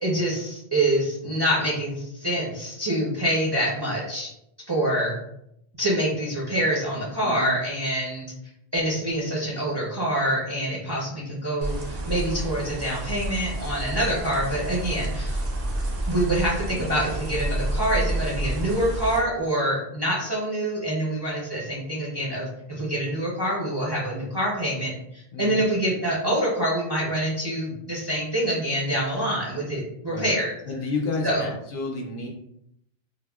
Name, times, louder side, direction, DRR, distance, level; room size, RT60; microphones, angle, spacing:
voice 1, 0.0-4.3 4.7-5.2 5.8-8.3 8.7-15.4 16.1-30.5 31.2-31.4, right 1 dB, 35° right, -5 dB, 0.4 m, -26 dB
voice 2, 7.2-7.5 16.7-17.0 25.3-25.7 30.1-30.3 30.7-32.3, left 3 dB, 65° left, 0 dB, 0.7 m, -31 dB
sound 1, 11.6-19.2, right 1 dB, 65° right, 0.8 m, -29 dB
3.3 x 2.0 x 2.2 m, 0.77 s
omnidirectional pair, 1.0 m